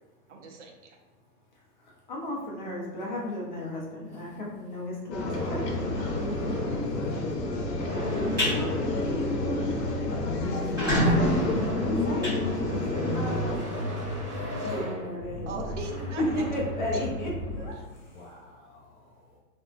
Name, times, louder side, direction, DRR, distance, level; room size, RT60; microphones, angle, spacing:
voice 1, 0.3-1.0 10.9-11.1 14.6-14.9 15.5-16.2, right 4 dB, 50° right, 2 dB, 0.5 m, -39 dB
voice 2, 1.8-6.1 10.4-13.9 14.3-15.8 16.2-18.3, left 1 dB, 30° left, -3 dB, 0.5 m, -35 dB
sound 1, 5.1-13.6, left 2 dB, 90° left, 0.7 m, -30 dB
sound 2, 5.3-17.7, equal, 25° right, 1.1 m, -35 dB
voice 3, 8.1-8.8 18.1-19.4, left 1 dB, 45° left, -5 dB, 0.8 m, -45 dB
sound 3, 8.1-8.5 9.0-9.2 9.6-9.7 9.9-10.0 10.5-13.1, equal, 10° right, 0.6 m, -27 dB
2.5 x 2.1 x 2.4 m, 1.1 s
hypercardioid pair, 145°, 48 cm